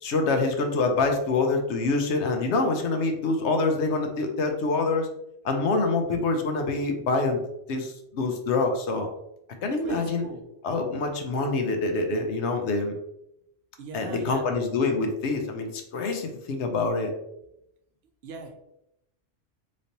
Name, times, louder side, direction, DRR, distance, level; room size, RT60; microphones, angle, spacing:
voice 1, 0.0-5.1 5.4-7.4 7.7-9.1 9.6-10.2 10.6-13.0 13.9-17.1, left 3 dB, 75° left, 4 dB, 1.0 m, -26 dB
voice 2, 9.8-10.4 13.8-14.4 18.2-18.6, right 3 dB, 65° right, 4 dB, 0.8 m, -39 dB
4.0 x 3.2 x 2.7 m, 0.82 s
omnidirectional pair, 1.2 m